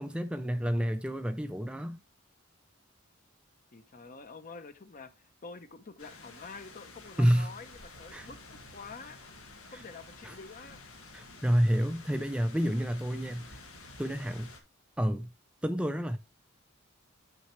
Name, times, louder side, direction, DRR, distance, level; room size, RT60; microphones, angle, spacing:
voice 1, 0.0-2.0 7.2-7.5 8.1-8.3 9.7-9.8 10.2-10.4 11.1-13.6 14.0-14.5 15.0-15.3 15.6-16.2, equal, 5° right, 0.3 m, -29 dB
voice 2, 3.7-9.2 9.7-10.8, left 4 dB, 40° left, 0.7 m, -47 dB
sound 1, 6.0-14.6, left 3 dB, 90° left, 1.6 m, -51 dB
7.4 x 6.3 x 3.1 m
head